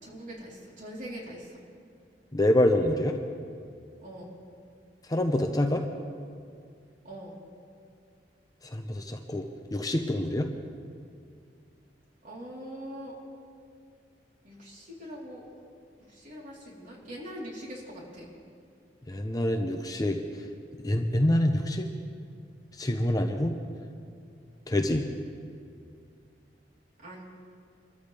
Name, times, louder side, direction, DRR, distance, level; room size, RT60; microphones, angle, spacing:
voice 1, 0.0-1.6 4.0-4.4 7.0-7.4 12.2-13.1 14.4-15.5 16.1-18.2 27.0-27.2, equal, 50° right, -4 dB, 3.9 m, -42 dB
voice 2, 2.3-3.2 5.1-5.8 8.6-9.5 9.7-10.5 19.1-20.2 20.8-21.9 22.8-23.5 24.7-25.1, left 1 dB, 20° left, 4 dB, 0.8 m, -26 dB
26.0 x 14.0 x 3.5 m, 2.3 s
head